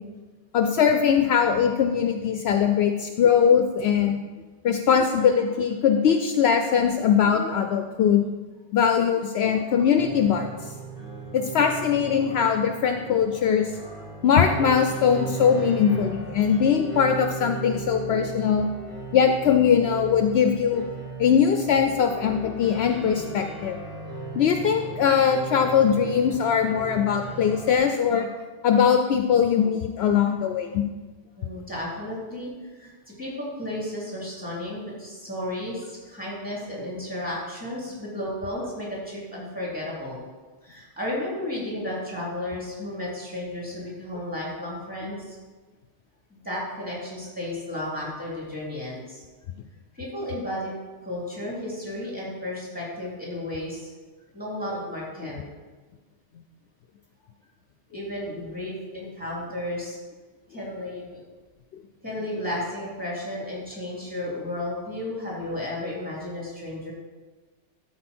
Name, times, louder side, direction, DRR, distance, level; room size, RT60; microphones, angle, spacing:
voice 1, 0.5-4.2 4.6-8.3 8.7-10.5 11.3-13.7 14.2-18.7 19.1-20.8 21.2-23.8 24.3-28.3 28.6-30.8, left 7 dB, 70° left, 5 dB, 0.8 m, -21 dB
sound 1, 9.9-27.8, right 4 dB, 55° right, 2.7 m, -37 dB
voice 2, 31.4-32.5 32.8-40.2 40.6-45.4 46.4-49.2 49.9-50.7 51.0-53.9 54.3-55.5 57.9-60.0 60.5-61.2 62.0-66.9, left 1 dB, 5° right, -6 dB, 2.9 m, -33 dB
13.0 x 4.5 x 4.3 m, 1.3 s
omnidirectional pair, 1.2 m